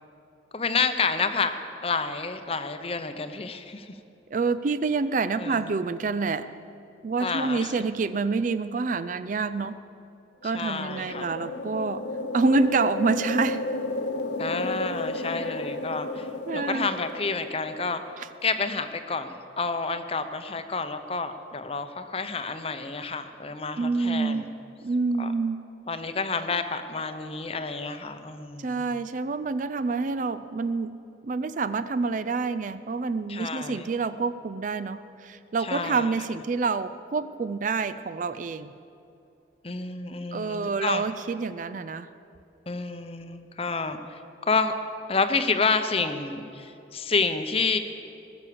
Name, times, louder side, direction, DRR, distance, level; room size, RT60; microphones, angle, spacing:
voice 1, 0.5-1.5 1.8-3.9 5.4-5.7 7.2-7.7 10.4-11.3 14.4-16.3 16.5-18.0 18.4-24.5 25.2-25.3 25.9-28.8 33.3-33.9 35.6-36.1 39.6-41.1 42.7-44.2 44.5-44.7 45.1-47.8, left 4 dB, 30° left, 9 dB, 0.7 m, -29 dB
voice 2, 4.3-6.5 7.0-9.8 10.4-12.0 12.3-13.7 16.5-16.9 18.2-18.3 23.8-24.5 24.8-25.6 28.6-31.0 31.2-38.7 40.3-42.1, right 4 dB, 45° right, 13 dB, 0.4 m, -27 dB
sound 1, 10.5-18.1, left 2 dB, 65° left, 0.7 m, -33 dB
19.5 x 7.2 x 6.9 m, 2.7 s
head